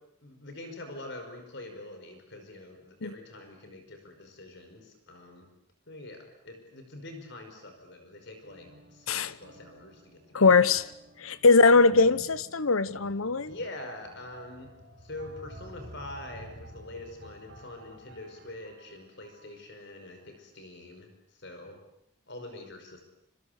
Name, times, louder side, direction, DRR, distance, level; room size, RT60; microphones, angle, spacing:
voice 1, 0.2-5.5 5.9-10.5 13.4-14.7 15.0-21.8 22.3-23.0, left 2 dB, 55° left, 5.4 m, -44 dB
sound 1, 8.4-19.9, right 1 dB, 50° right, 5.2 m, -51 dB
voice 2, 10.3-10.8 11.2-13.5, left 4 dB, 85° left, 1.1 m, -21 dB
27.0 x 26.5 x 8.3 m
head